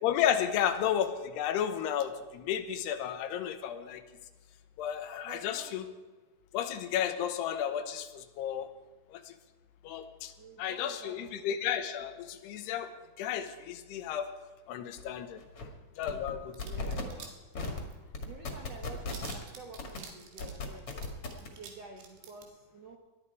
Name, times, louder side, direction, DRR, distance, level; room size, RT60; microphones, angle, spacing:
voice 1, 0.0-4.0 4.8-5.9 6.5-8.7 9.1-9.3 9.8-10.3 10.6-12.9 13.2-14.3 14.7-15.4 16.0-16.5, left 9 dB, 85° left, 9 dB, 3.0 m, -32 dB
voice 2, 5.2-5.7 10.4-11.5 16.6-17.8 18.2-21.0 21.4-23.0, right 3 dB, 65° right, 2 dB, 1.6 m, -50 dB
sound 1, 15.0-15.1 15.4-15.6 16.0-16.3 16.6-17.0 17.5-17.8 18.1-19.4 19.8-20.0 20.4-21.5, left 3 dB, 40° left, 2.4 m, -36 dB
sound 2, 16.5-17.3 17.5-18.2 18.5-18.6 18.8-21.7 22.0-22.4, right 7 dB, 90° right, 4.0 m, -48 dB
19.5 x 12.5 x 4.8 m, 1.3 s
omnidirectional pair, 4.7 m